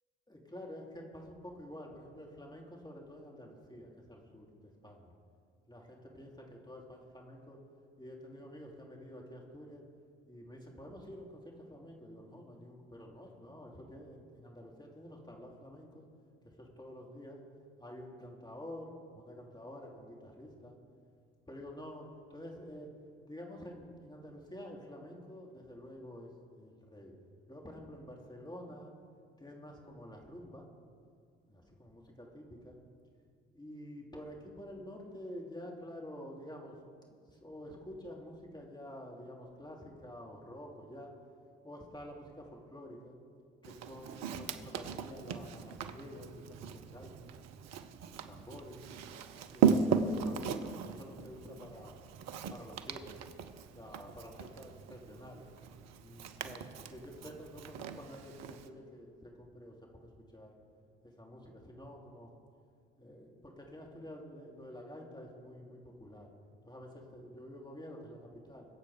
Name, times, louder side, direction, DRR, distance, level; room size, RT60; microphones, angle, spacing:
voice 1, 0.3-5.1 5.7-7.6 8.0-9.8 10.3-16.0 16.4-17.4 17.8-20.7 21.5-22.9 23.3-27.1 27.5-28.9 29.4-30.7 31.5-32.8 33.5-41.1 41.6-43.1 43.6-47.3 48.0-48.8 49.5-51.9 52.5-53.2 53.7-55.5 56.0-60.5 61.0-62.3 63.0-66.3 66.6-68.7, equal, 15° left, -1 dB, 3.1 m, -49 dB
Walk footsteps, 43.6-58.7, right 6 dB, 60° right, 0.9 m, -37 dB
22.5 x 8.2 x 5.0 m, 2.3 s
figure-of-eight pair, 50°, 30 cm